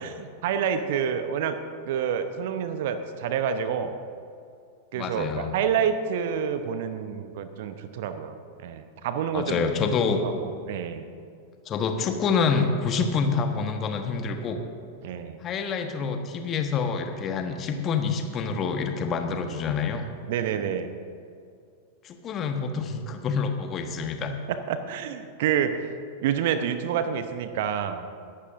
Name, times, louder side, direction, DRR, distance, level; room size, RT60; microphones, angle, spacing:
voice 1, 0.0-1.6 1.9-3.9 4.9-8.3 8.6-9.7 10.2-10.3 10.7-11.1 15.0-15.4 20.3-20.9 24.5-25.9 26.2-28.0, right 8 dB, 55° right, 10 dB, 0.8 m, -28 dB
voice 2, 4.9-5.5 9.3-10.2 11.6-14.6 15.4-20.1 22.0-24.3, left 5 dB, 30° left, 5 dB, 1.3 m, -27 dB
22.0 x 11.5 x 2.6 m, 2.4 s
figure-of-eight pair, 90°, 0 cm